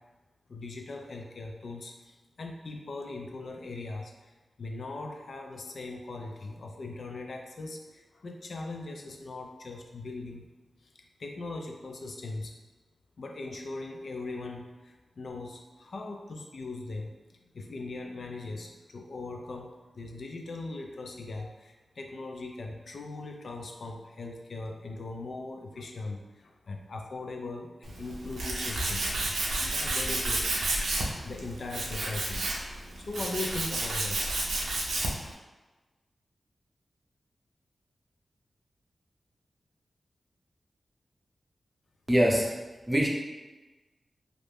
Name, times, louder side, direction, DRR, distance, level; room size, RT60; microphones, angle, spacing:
voice 1, 0.5-10.5 10.8-10.9 11.2-12.5 13.2-30.5 31.2-32.4 33.0-34.2, left 3 dB, 70° left, 2 dB, 0.3 m, -40 dB
Tools, 27.8-35.3, right 2 dB, 85° right, 0.4 m, -31 dB
voice 2, 42.1-42.5 42.9-43.1, equal, 15° right, -1 dB, 0.6 m, -23 dB
2.5 x 2.0 x 3.3 m, 1.2 s
cardioid pair, 45°, 0 cm